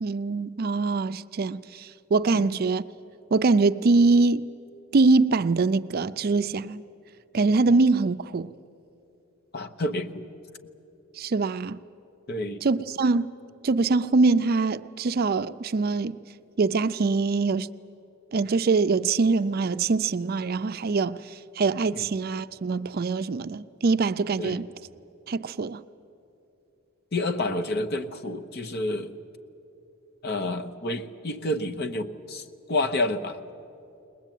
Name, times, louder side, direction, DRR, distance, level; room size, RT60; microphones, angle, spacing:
voice 1, 0.0-2.8 3.3-4.4 4.9-6.8 7.3-8.5 11.2-11.8 12.6-13.3 13.6-16.2 16.6-17.7 18.3-24.7 25.3-25.8, right 3 dB, 45° right, 0.4 m, -23 dB
voice 2, 9.5-10.3 12.3-12.6 21.9-22.1 24.4-24.6 27.1-29.2 30.2-33.4, left 2 dB, 50° left, 1.0 m, -29 dB
21.0 x 20.0 x 9.2 m
head